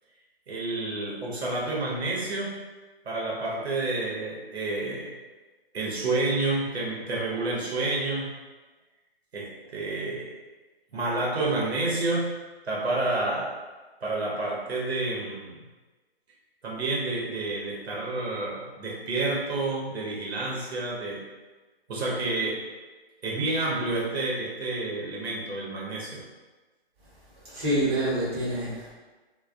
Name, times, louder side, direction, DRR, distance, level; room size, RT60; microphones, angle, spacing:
voice 1, 0.5-2.7 3.0-5.1 5.7-8.4 9.3-10.3 10.9-12.3 12.6-13.5 14.0-15.6 16.6-21.2 21.9-22.7 23.2-26.2, right 2 dB, 80° right, -5 dB, 0.8 m, -29 dB
voice 2, 27.5-28.9, right 1 dB, 25° right, -9 dB, 0.9 m, -26 dB
2.2 x 2.2 x 2.5 m, 1.3 s
hypercardioid pair, 150°, 31 cm